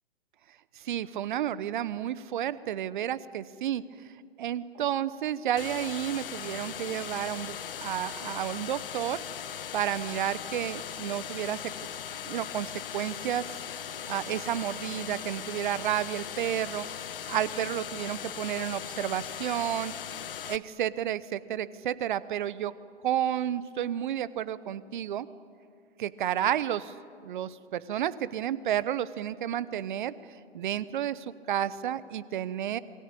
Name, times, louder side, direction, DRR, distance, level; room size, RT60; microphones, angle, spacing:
voice 1, 0.7-3.8 4.4-9.2 9.7-11.6 12.3-13.4 14.1-16.9 17.3-19.9 20.5-22.7 23.0-25.3 26.0-26.9 27.2-30.1 30.5-32.8, right 11 dB, 50° right, 17 dB, 1.1 m, -31 dB
sound 1, 5.6-20.6, left 9 dB, 60° left, 1.3 m, -39 dB
27.5 x 22.0 x 8.6 m, 2.3 s
figure-of-eight pair, 120°, 32 cm